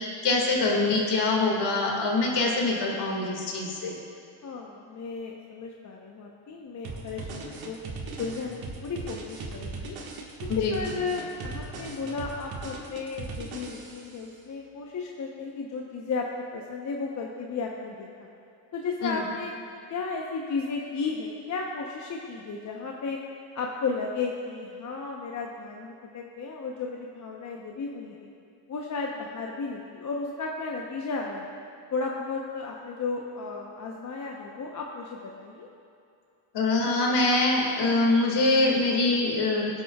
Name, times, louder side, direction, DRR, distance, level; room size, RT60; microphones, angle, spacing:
voice 1, 0.0-4.0 10.5-10.7 19.0-19.2 36.5-39.7, left 2 dB, 55° left, 0 dB, 2.2 m, -24 dB
voice 2, 4.4-7.8 8.2-10.0 10.7-16.2 16.5-18.3 18.7-19.5 19.9-23.2 23.5-28.3 28.7-31.5 31.9-35.7, left 4 dB, 35° left, -1 dB, 0.9 m, -34 dB
sound 1, 6.8-14.2, right 3 dB, 45° right, 1.7 m, -38 dB
19.0 x 8.3 x 2.4 m, 2.5 s
supercardioid pair, 100°, 50 cm